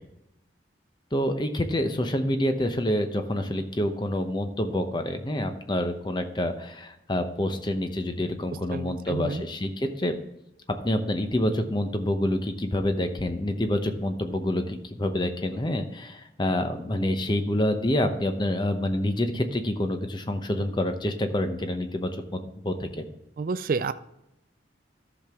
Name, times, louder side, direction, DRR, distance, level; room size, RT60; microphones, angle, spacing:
voice 1, 1.1-10.1 10.8-23.0, left 1 dB, 25° left, 7 dB, 0.8 m, -27 dB
voice 2, 8.7-9.4 23.4-23.9, right 4 dB, 50° right, 12 dB, 0.4 m, -29 dB
13.5 x 6.0 x 3.6 m, 0.84 s
head